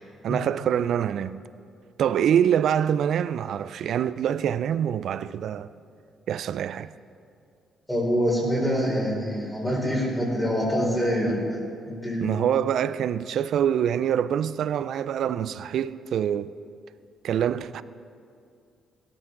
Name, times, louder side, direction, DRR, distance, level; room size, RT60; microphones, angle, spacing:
voice 1, 0.2-1.4 2.0-5.7 6.3-6.9 12.2-16.5 17.2-17.8, right 9 dB, 70° right, 0.4 m, -25 dB
voice 2, 7.9-11.6 11.8-12.3, equal, 10° left, 4.1 m, -25 dB
17.0 x 13.0 x 3.8 m
cardioid pair, 90°, 0 cm